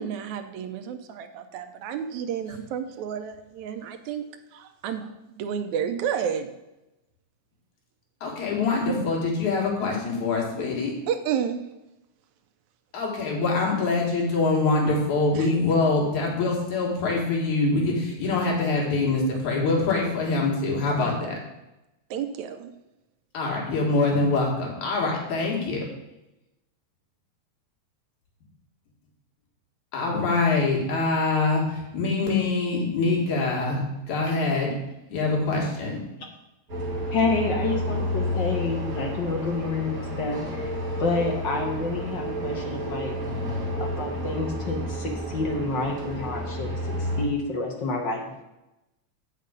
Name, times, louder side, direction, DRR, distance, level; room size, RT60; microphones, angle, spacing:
voice 1, 0.0-4.3 4.5-6.5 11.1-11.6 15.4-15.5 22.1-22.7, right 8 dB, 85° right, 8 dB, 2.1 m, -31 dB
voice 2, 8.2-11.0 12.9-21.4 23.3-25.9 29.9-34.7 35.1-36.0, left 3 dB, 85° left, -2 dB, 3.4 m, -24 dB
sound 1, 36.7-47.3, equal, 35° right, 1.8 m, -30 dB
voice 3, 37.1-43.2 43.6-48.4, left 3 dB, 55° left, 1 dB, 1.4 m, -29 dB
8.2 x 6.6 x 5.2 m, 0.95 s
omnidirectional pair, 3.3 m